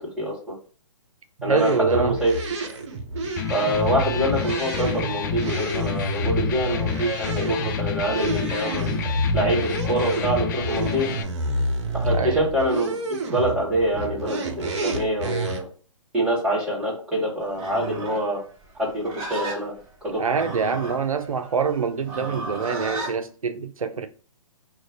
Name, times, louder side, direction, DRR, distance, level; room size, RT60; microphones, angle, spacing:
voice 1, 0.2-0.5 1.4-2.3 2.6-2.7 3.5-9.0 9.3-11.1 11.9-13.0 13.2-15.7 16.1-18.4 18.8-19.7 20.0-20.2, right 1 dB, 5° right, 1.7 m, -25 dB
voice 2, 1.4-2.2 12.0-12.4 20.2-24.1, right 5 dB, 85° right, 0.5 m, -25 dB
sound 1, 1.6-15.6, right 2 dB, 55° right, 0.8 m, -29 dB
Electric guitar, 3.2-11.2, left 7 dB, 35° left, 0.4 m, -29 dB
Livestock farm animals working animals, 17.5-23.2, right 3 dB, 25° right, 0.8 m, -35 dB
2.9 x 2.2 x 3.8 m
figure-of-eight pair, 135°, 17 cm